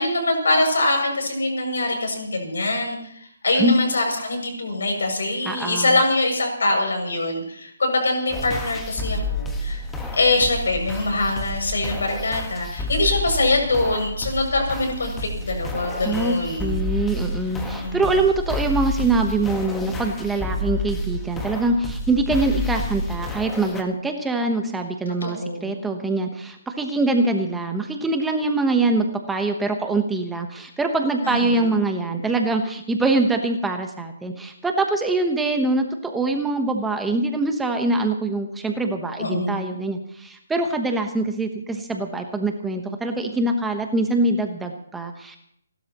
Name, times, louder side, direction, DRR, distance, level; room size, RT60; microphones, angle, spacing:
voice 1, 0.0-3.0 3.4-9.8 10.1-16.7 17.7-18.1 25.2-25.8 31.2-31.7 39.2-39.8, left 2 dB, 80° left, 2 dB, 6.8 m, -23 dB
voice 2, 5.4-5.9 16.0-45.4, right 2 dB, 5° right, 4 dB, 1.1 m, -24 dB
sound 1, 8.3-23.8, left 1 dB, 10° left, 1.4 m, -30 dB
29.5 x 12.5 x 3.0 m, 0.69 s
hypercardioid pair, 155°, 0 cm